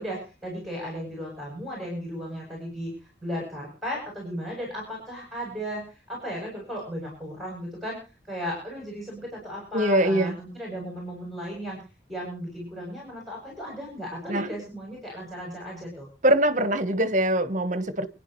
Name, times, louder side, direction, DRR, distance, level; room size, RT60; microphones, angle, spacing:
voice 1, 0.0-2.9 3.2-8.0 8.3-11.8 12.1-16.1, equal, ahead, 7.6 m, -35 dB
voice 2, 9.7-10.3 14.3-14.5 16.2-18.1, right 1 dB, 40° right, 1.4 m, -23 dB
28.5 x 10.0 x 3.2 m
head